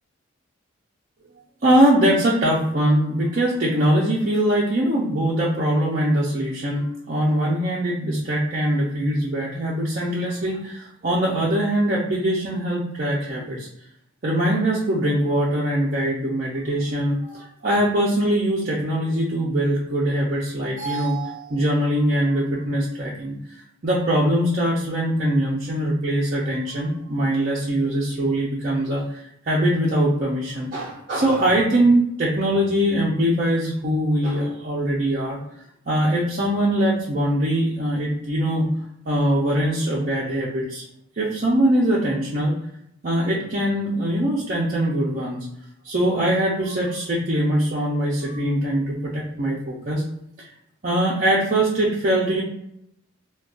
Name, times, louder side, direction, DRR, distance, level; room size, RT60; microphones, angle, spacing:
voice 1, 1.6-13.7 14.2-23.4 23.8-35.4 35.9-38.7 39.0-40.8 41.2-42.5 43.0-45.5 45.8-50.0 50.8-52.4, right 1 dB, 40° right, -6 dB, 0.5 m, -22 dB
2.5 x 2.3 x 3.6 m, 0.76 s
head